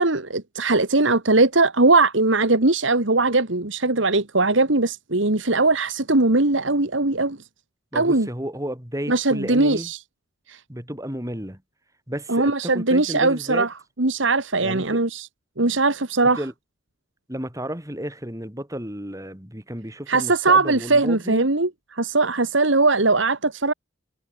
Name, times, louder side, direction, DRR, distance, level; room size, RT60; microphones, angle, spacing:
voice 1, 0.0-7.4 7.9-8.3 9.1-10.0 10.5-10.6 12.3-15.3 15.6-16.4 20.1-23.7, right 3 dB, 70° right, 2.2 m, -20 dB
voice 2, 7.9-9.9 10.7-11.6 12.1-13.7 14.6-15.0 16.4-16.5 17.3-21.5, equal, 15° right, 4.4 m, -32 dB
head